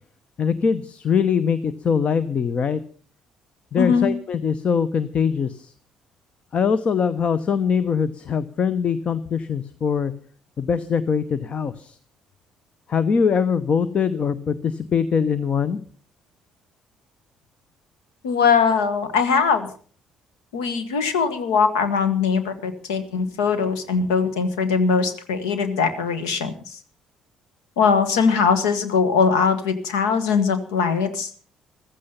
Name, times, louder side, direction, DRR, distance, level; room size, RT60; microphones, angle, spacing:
voice 1, 0.4-2.8 3.7-5.6 6.5-10.1 10.6-11.9 12.9-15.8, left 6 dB, 45° left, 16 dB, 0.9 m, -22 dB
voice 2, 3.8-4.1 18.2-19.7 20.5-26.8 27.8-31.3, left 5 dB, 75° left, 12 dB, 1.5 m, -21 dB
15.0 x 14.0 x 5.5 m, 0.43 s
figure-of-eight pair, 50°, 3 cm